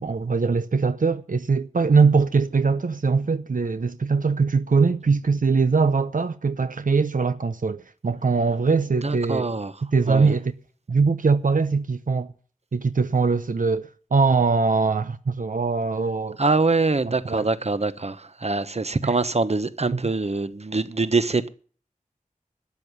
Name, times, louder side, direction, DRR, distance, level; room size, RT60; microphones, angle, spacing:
voice 1, 0.0-9.5 9.9-10.5 10.9-12.3 12.7-16.4 17.2-17.5 19.0-19.1 19.9-20.0, right 4 dB, 75° right, 0.8 m, -22 dB
voice 2, 9.0-10.4 16.4-21.5, right 3 dB, 50° right, 1.1 m, -24 dB
13.0 x 9.3 x 8.3 m
wide cardioid pair, 60°, 14 cm